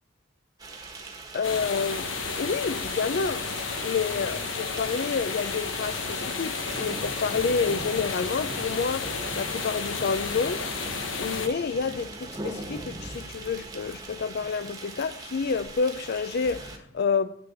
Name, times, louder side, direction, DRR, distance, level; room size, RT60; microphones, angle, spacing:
sound 1, 0.6-16.8, right 2 dB, 20° right, 1.3 m, -40 dB
voice 1, 1.3-2.1 2.4-3.5 3.8-10.7 11.2-17.4, left 5 dB, 55° left, 0.4 m, -29 dB
sound 2, 1.4-11.5, left 5 dB, 85° left, 1.1 m, -32 dB
8.7 x 6.8 x 8.3 m
head